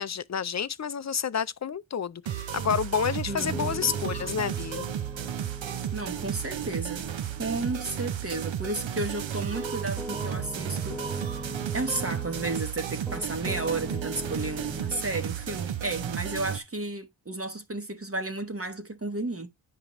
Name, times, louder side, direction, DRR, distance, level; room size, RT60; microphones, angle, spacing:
voice 1, 0.0-4.9, left 7 dB, 40° left, 0.4 m, -29 dB
sound 1, 2.3-16.6, right 9 dB, 80° right, 0.7 m, -33 dB
Piano, 3.3-12.6 13.1-15.1, right 1 dB, ahead, 1.3 m, -41 dB
voice 2, 3.3-4.0 5.9-7.1 7.4-11.3 11.7-19.5, right 2 dB, 30° right, 0.9 m, -33 dB
9.4 x 5.0 x 3.0 m
cardioid pair, 55°, 46 cm